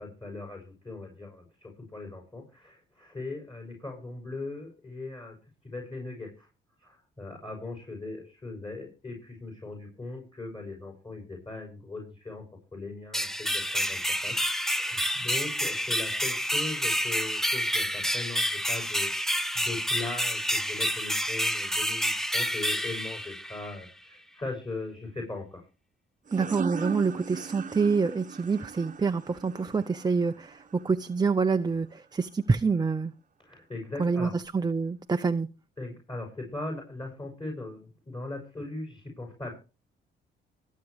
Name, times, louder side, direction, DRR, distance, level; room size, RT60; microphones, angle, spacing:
voice 1, 0.0-5.3 5.6-6.5 6.8-12.4 12.7-14.4 14.7-25.7 33.4-34.3 35.8-39.5, left 2 dB, 25° left, 7.2 m, -39 dB
sound 1, 13.1-23.8, equal, ahead, 1.0 m, -29 dB
voice 2, 26.3-33.1 34.0-35.5, right 4 dB, 20° right, 0.7 m, -27 dB
sound 2, 26.3-31.6, right 6 dB, 40° right, 1.1 m, -39 dB
24.0 x 8.4 x 3.3 m
cardioid pair, 90°, 20 cm